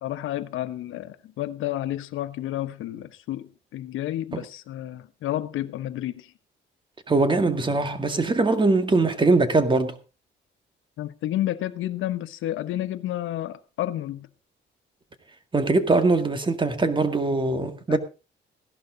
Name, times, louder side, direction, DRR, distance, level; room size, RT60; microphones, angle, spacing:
voice 1, 0.0-6.3 11.0-14.3 17.9-18.0, left 13 dB, 85° left, 1.1 m, -31 dB
voice 2, 7.1-10.0 15.5-18.0, right 3 dB, 25° right, 2.1 m, -22 dB
16.0 x 11.5 x 3.9 m
cardioid pair, 90°, 20 cm